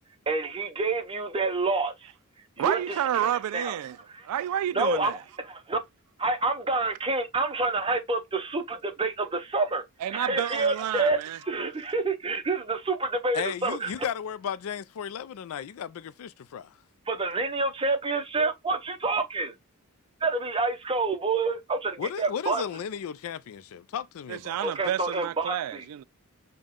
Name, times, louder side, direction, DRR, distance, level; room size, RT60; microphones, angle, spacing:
voice 1, 0.3-1.9 2.6-3.8 4.1-4.3 4.7-5.1 5.4-5.8 6.2-9.8 10.1-13.9 17.1-19.5 20.2-22.6 24.6-25.8, right 3 dB, 25° right, 0.7 m, -28 dB
voice 2, 2.6-4.0 4.2-5.2 10.0-11.4 24.3-26.0, right 10 dB, 80° right, 0.3 m, -30 dB
voice 3, 13.3-16.7 22.0-24.6, left 8 dB, 65° left, 0.4 m, -35 dB
5.3 x 2.2 x 3.6 m
head